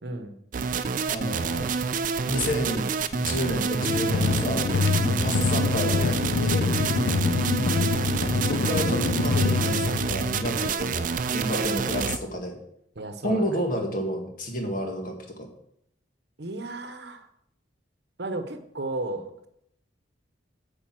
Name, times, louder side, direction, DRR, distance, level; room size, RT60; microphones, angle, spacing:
voice 1, 0.0-0.3 4.9-5.2 6.9-7.7 11.5-11.9 13.0-13.6 16.4-17.3 18.2-19.5, right 2 dB, 60° right, 8 dB, 1.0 m, -34 dB
sound 1, 0.5-12.2, right 5 dB, 45° right, 0.5 m, -28 dB
voice 2, 1.1-1.7 2.3-2.9 3.1-4.7 5.2-6.7 8.4-12.6 13.2-15.1, equal, 45° left, 2 dB, 1.9 m, -30 dB
sound 2, 3.8-10.7, left 4 dB, 60° left, 0.4 m, -26 dB
9.2 x 5.2 x 7.6 m, 0.74 s
head